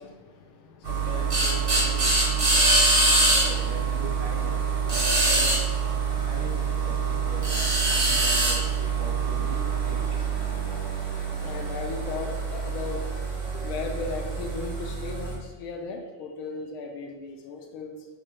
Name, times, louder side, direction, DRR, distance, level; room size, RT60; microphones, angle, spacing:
voice 1, 0.0-3.8 4.8-5.2 6.1-6.3 11.4-13.1 13.5-18.0, left 4 dB, 80° left, 3 dB, 1.4 m, -38 dB
sound 1, 0.8-15.3, right 3 dB, 40° right, 0.8 m, -25 dB
voice 2, 3.4-5.6 6.2-10.3, right 2 dB, 85° right, -1 dB, 1.8 m, -41 dB
6.5 x 2.2 x 3.2 m, 1.2 s
omnidirectional pair, 2.4 m